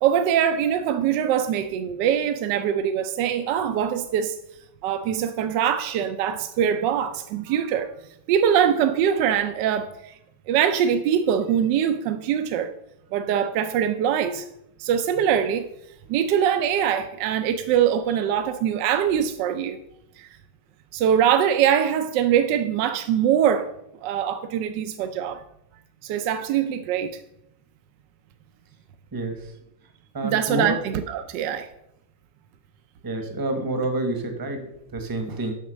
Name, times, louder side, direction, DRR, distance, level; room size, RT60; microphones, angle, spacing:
voice 1, 0.0-4.4 4.8-7.9 8.3-10.1 10.5-12.7 13.1-14.5 14.8-15.7 16.1-19.8 20.2-20.3 20.9-23.7 24.0-25.4 26.0-27.2 30.2-31.7, right 9 dB, 75° right, 1.2 m, -23 dB
voice 2, 29.1-29.5 30.1-30.7 33.0-35.5, right 2 dB, 15° right, 0.8 m, -28 dB
7.3 x 5.8 x 6.1 m
omnidirectional pair, 2.0 m